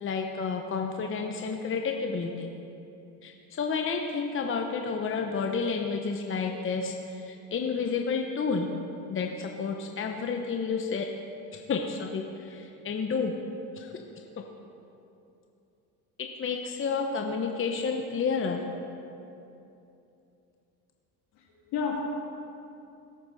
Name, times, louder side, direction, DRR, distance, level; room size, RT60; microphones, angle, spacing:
voice 1, 0.0-2.5 3.2-8.7 9.1-11.1 11.5-13.3 13.8-13.9 16.4-18.6, left 5 dB, 30° left, 3 dB, 0.9 m, -30 dB
voice 2, 21.3-22.0, left 6 dB, 70° left, -1 dB, 2.6 m, -32 dB
17.5 x 8.6 x 4.1 m, 2.8 s
supercardioid pair, 100°, 41 cm